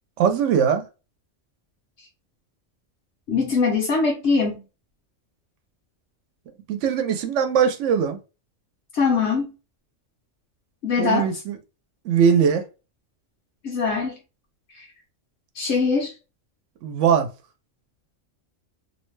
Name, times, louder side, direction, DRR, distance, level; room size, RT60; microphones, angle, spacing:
voice 1, 0.2-0.9 6.7-8.2 11.0-11.6 12.0-12.6 16.8-17.3, right 7 dB, 80° right, 0.9 m, -20 dB
voice 2, 3.3-4.6 8.9-9.5 10.8-11.3 13.6-14.1 14.7-14.9 15.5-16.1, left 4 dB, 70° left, 1.0 m, -22 dB
2.7 x 2.1 x 3.1 m
omnidirectional pair, 1.3 m